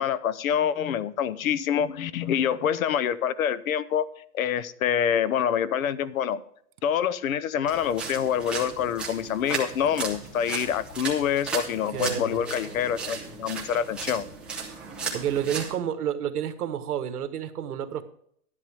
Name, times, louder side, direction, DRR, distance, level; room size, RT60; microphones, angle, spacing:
voice 1, 0.0-4.1 4.3-6.4 6.8-14.2, left 9 dB, 65° left, 17 dB, 0.9 m, -26 dB
sound 1, 7.7-15.7, right 5 dB, ahead, 0.6 m, -35 dB
Acoustic guitar, 11.9-14.3, left 2 dB, 30° left, 4.6 m, -42 dB
voice 2, 11.9-12.4 15.1-18.0, right 9 dB, 75° right, 9 dB, 1.5 m, -30 dB
12.0 x 10.5 x 3.5 m, 0.65 s
hypercardioid pair, 165°, 46 cm